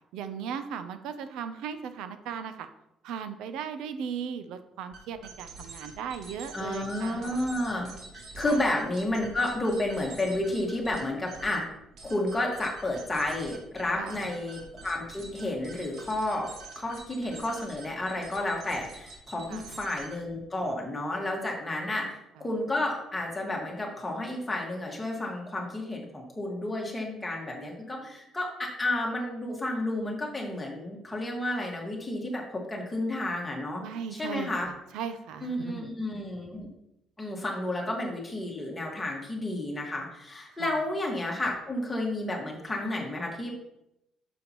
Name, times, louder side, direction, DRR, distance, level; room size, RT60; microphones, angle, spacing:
voice 1, 0.1-2.7 3.0-7.4 8.5-8.6 14.0-14.2 19.5-19.7 21.8-22.0 33.8-35.9 40.6-40.8, right 7 dB, 85° right, 10 dB, 0.6 m, -37 dB
sound 1, 4.9-20.4, right 3 dB, 65° right, 2.3 m, -47 dB
voice 2, 6.5-7.9 8.1-11.6 12.0-16.5 16.8-33.8 34.1-34.7 35.4-36.7 37.2-43.5, left 1 dB, 15° left, -1 dB, 1.8 m, -31 dB
9.0 x 7.0 x 3.0 m, 0.84 s
cardioid pair, 140°, 0 cm